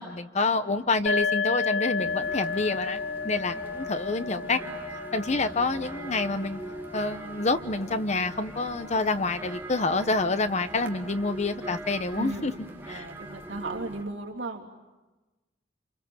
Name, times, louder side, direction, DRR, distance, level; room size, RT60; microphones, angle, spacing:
voice 1, 0.0-4.6 5.1-6.6 6.9-12.5 12.9-13.1, left 3 dB, 40° left, 10 dB, 1.0 m, -27 dB
sound 1, 1.1-8.5, left 4 dB, 60° left, 1.6 m, -33 dB
sound 2, 2.0-14.0, right 1 dB, 10° right, 2.2 m, -42 dB
voice 2, 12.1-12.5 12.8-14.8, right 2 dB, 85° right, -1 dB, 3.5 m, -36 dB
28.0 x 27.5 x 7.2 m, 1.1 s
head